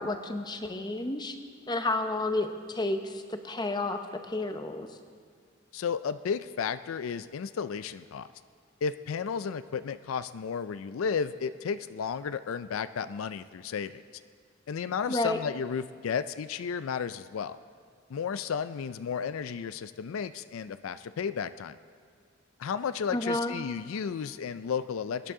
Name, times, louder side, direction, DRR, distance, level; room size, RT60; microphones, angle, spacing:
voice 1, 0.0-1.4 1.7-4.9 15.1-15.4 23.1-23.5, left 2 dB, 20° left, 7 dB, 0.7 m, -31 dB
voice 2, 5.7-8.3 8.8-14.0 14.7-17.6 18.1-21.8 22.6-25.3, left 6 dB, 80° left, 12 dB, 0.4 m, -33 dB
23.0 x 10.5 x 3.7 m, 2.2 s
head